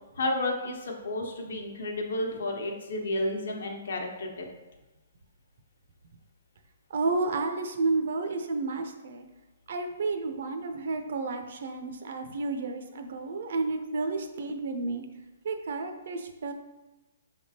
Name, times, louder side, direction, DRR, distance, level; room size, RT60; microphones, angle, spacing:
voice 1, 0.1-4.5, left 1 dB, 80° left, 1 dB, 0.9 m, -31 dB
voice 2, 6.9-9.3 9.7-15.0 15.4-16.5, right 3 dB, 60° right, 6 dB, 0.5 m, -31 dB
4.9 x 3.4 x 2.8 m, 1.1 s
hypercardioid pair, 160°, 0 cm